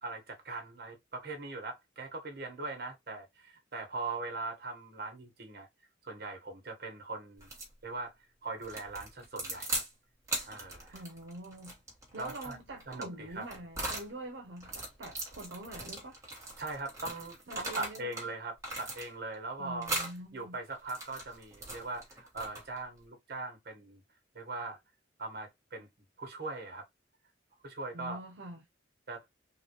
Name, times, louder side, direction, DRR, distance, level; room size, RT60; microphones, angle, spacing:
voice 1, 0.0-5.7 6.0-7.5 7.8-8.1 8.4-9.8 10.5-11.0 12.2-12.6 12.9-13.5 16.6-20.0 20.3-24.0 24.3-24.8 25.2-25.9 26.2-26.9 27.6-28.2 29.1-29.2, right 3 dB, 55° right, 1.2 m, -40 dB
sound 1, 7.4-7.7 8.6-9.9 10.2-14.1 14.6-18.3 18.6-19.3 19.8-20.2 20.7-22.8, right 2 dB, 15° right, 1.2 m, -40 dB
voice 2, 10.9-11.8 12.1-16.2 17.5-18.3 19.6-20.6 27.9-28.6, right 1 dB, 80° right, 0.6 m, -45 dB
3.8 x 2.3 x 2.9 m
head